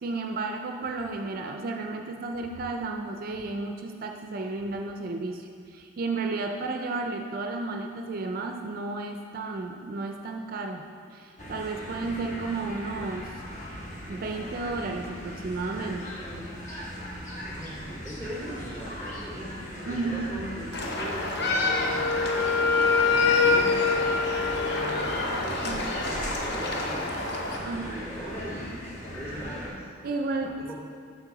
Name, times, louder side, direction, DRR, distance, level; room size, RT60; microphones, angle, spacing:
voice 1, 0.0-13.3 14.1-16.1 16.5-16.6 19.9-20.3 25.3-25.9 27.6-28.0 30.0-30.7, right 3 dB, 45° right, 3 dB, 0.4 m, -33 dB
sound 1, 11.4-29.7, equal, 40° left, 1.1 m, -38 dB
voice 2, 17.5-19.5 19.8-22.6 23.1-24.1 24.5-27.1 27.5-29.9 30.6-30.7, equal, 15° left, -4 dB, 1.2 m, -40 dB
sound 2, 20.7-27.6, left 2 dB, 55° left, 0.8 m, -30 dB
Wind instrument woodwind instrument, 21.6-25.5, left 5 dB, 80° left, 0.4 m, -24 dB
7.4 x 5.6 x 3.9 m, 2.3 s
head